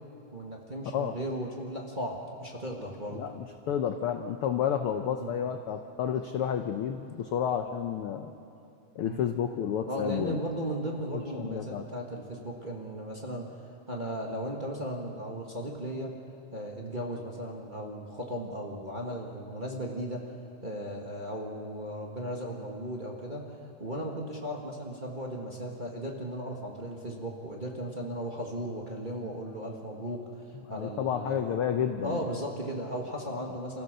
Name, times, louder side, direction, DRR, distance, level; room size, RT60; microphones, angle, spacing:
voice 1, 0.3-3.2 5.2-5.3 9.0-9.2 9.9-13.5 13.9-16.1 16.5-20.3 20.6-30.4 30.7-31.5 32.0-33.8, right 1 dB, 20° right, -1 dB, 1.3 m, -36 dB
voice 2, 3.1-8.3 8.9-10.4 11.3-11.8 30.7-32.3 33.3-33.4, left 8 dB, 75° left, 6 dB, 1.3 m, -31 dB
28.5 x 15.5 x 6.7 m, 2.6 s
omnidirectional pair, 3.4 m